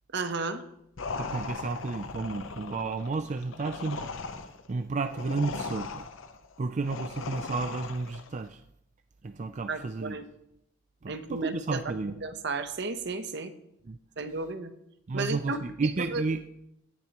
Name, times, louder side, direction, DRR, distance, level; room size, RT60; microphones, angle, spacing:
voice 1, 0.1-0.6 9.7-10.3 11.1-11.8 12.2-13.5 14.2-14.7 15.1-16.2, right 3 dB, 60° right, 9 dB, 1.0 m, -33 dB
sound 1, 1.0-8.4, left 4 dB, 80° left, 0.8 m, -38 dB
voice 2, 1.2-6.1 6.6-8.6 9.2-10.2 11.0-12.2 13.9-14.0 15.1-16.4, right 3 dB, 40° right, 8 dB, 0.4 m, -32 dB
17.0 x 10.5 x 3.0 m, 0.78 s
head